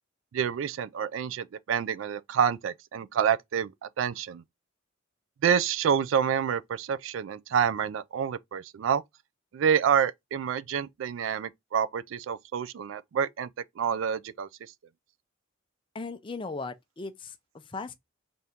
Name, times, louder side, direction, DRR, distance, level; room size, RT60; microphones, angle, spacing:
voice 1, 0.3-4.4 5.4-9.0 9.5-13.5 13.8-14.5, right 7 dB, 70° right, 0.3 m, -28 dB
voice 2, 15.9-17.9, left 3 dB, 25° left, 0.5 m, -38 dB
3.5 x 2.6 x 4.2 m
head